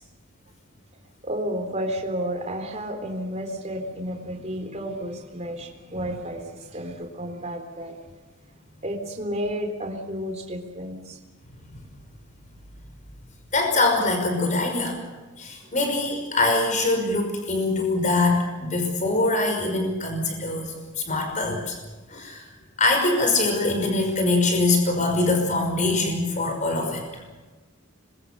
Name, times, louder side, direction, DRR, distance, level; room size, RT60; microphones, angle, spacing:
voice 1, 1.2-8.0 8.8-11.2 15.8-15.9, equal, 30° right, 3 dB, 4.0 m, -31 dB
voice 2, 13.5-15.0 15.4-21.8 22.1-22.5 22.8-27.0, left 2 dB, 35° left, 3 dB, 5.5 m, -23 dB
26.0 x 22.5 x 6.8 m, 1.2 s
head